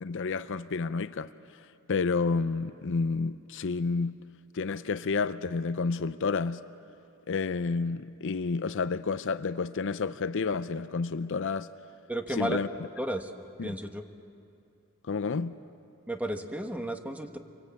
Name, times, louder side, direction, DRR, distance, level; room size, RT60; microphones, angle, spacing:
voice 1, 0.0-1.6 1.9-4.2 4.5-6.6 7.3-11.7 12.3-12.7 13.6-13.7 15.1-15.5, left 4 dB, 60° left, 0.6 m, -30 dB
voice 2, 12.1-12.6 13.0-13.3 13.6-14.0 16.1-17.4, right 1 dB, 5° right, 1.3 m, -33 dB
26.5 x 23.0 x 8.4 m
head